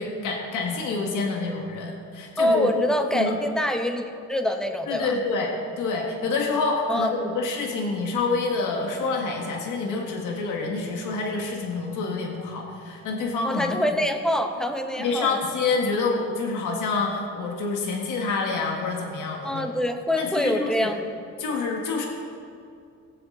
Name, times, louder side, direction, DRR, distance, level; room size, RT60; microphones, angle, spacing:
voice 1, 0.0-2.7 3.1-3.4 4.9-5.5 5.8-13.8 14.9-19.7 20.2-20.9 21.4-22.1, left 4 dB, 85° left, 1 dB, 1.6 m, -27 dB
voice 2, 2.4-4.0 4.3-5.2 6.9-7.1 13.4-15.4 19.4-21.0, left 1 dB, ahead, 5 dB, 1.1 m, -25 dB
18.5 x 7.2 x 3.8 m, 2.4 s
cardioid pair, 90°, 30 cm